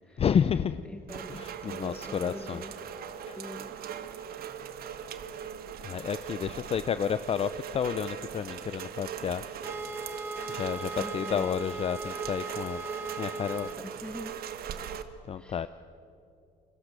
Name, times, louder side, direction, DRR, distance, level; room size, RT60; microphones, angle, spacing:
voice 1, 0.2-0.8 1.3-2.6 3.3-3.4 5.8-9.4 10.5-13.8 15.3-15.7, left 7 dB, 35° left, 13 dB, 0.6 m, -31 dB
voice 2, 0.8-1.3 1.6-2.7 3.4-3.7 11.0-11.5 13.5-14.7 15.4-15.7, left 1 dB, 5° left, 4 dB, 1.3 m, -43 dB
Rain, 1.1-15.0, right 8 dB, 65° right, 1.5 m, -40 dB
sound 1, 9.6-13.8, right 2 dB, 10° right, 1.4 m, -38 dB
29.5 x 21.5 x 6.8 m, 2.7 s
cardioid pair, 110°, 17 cm